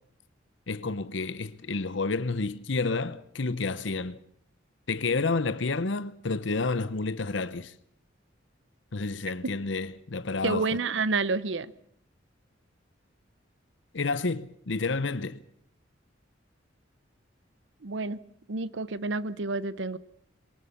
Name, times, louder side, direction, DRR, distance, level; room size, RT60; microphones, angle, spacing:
voice 1, 0.7-4.1 4.9-7.7 8.9-10.7 13.9-15.4, left 3 dB, 70° left, 0.8 m, -30 dB
voice 2, 10.4-11.7 17.8-18.2 18.5-20.0, right 3 dB, 70° right, 0.8 m, -29 dB
23.0 x 19.5 x 7.2 m
head